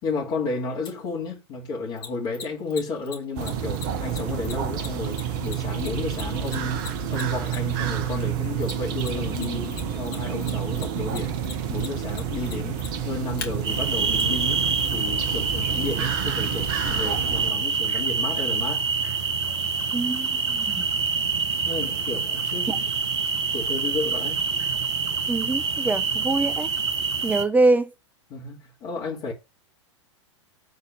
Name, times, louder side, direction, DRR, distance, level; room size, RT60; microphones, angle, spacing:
voice 1, 0.0-11.4 11.7-18.8 21.6-22.8 23.5-24.4 28.3-29.3, left 3 dB, 35° left, 2.6 m, -32 dB
Mechanisms, 0.8-0.9 2.0-7.8 8.6-9.5 9.7-13.5 14.2-14.3, left 6 dB, 50° left, 2.6 m, -38 dB
sound 1, 3.4-17.5, right 8 dB, 45° right, 1.1 m, -29 dB
sound 2, 13.6-27.4, right 5 dB, 65° right, 1.3 m, -26 dB
voice 2, 19.9-20.9 22.7-22.8 25.3-26.7 27.2-27.9, right 2 dB, 10° right, 0.8 m, -24 dB
8.1 x 4.2 x 6.2 m
figure-of-eight pair, 95°, 15 cm